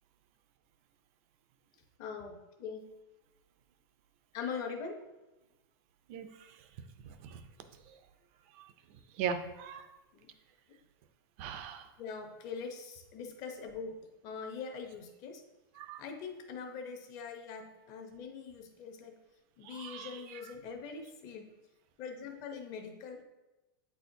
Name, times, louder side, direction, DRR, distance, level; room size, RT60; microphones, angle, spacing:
voice 1, 2.0-2.8 4.3-5.0 10.1-10.3 12.0-14.0 14.2-15.4 16.0-19.2 19.6-21.5 22.0-23.2, left 5 dB, 30° left, 4 dB, 0.7 m, -42 dB
voice 2, 6.1-6.6 7.0-7.4 7.9-8.0 8.5-8.7 9.2-9.9 11.4-11.9 15.8-16.0 19.6-20.4, right 7 dB, 35° right, 9 dB, 0.4 m, -40 dB
8.3 x 4.3 x 2.7 m, 1.0 s
supercardioid pair, 175°, 12 cm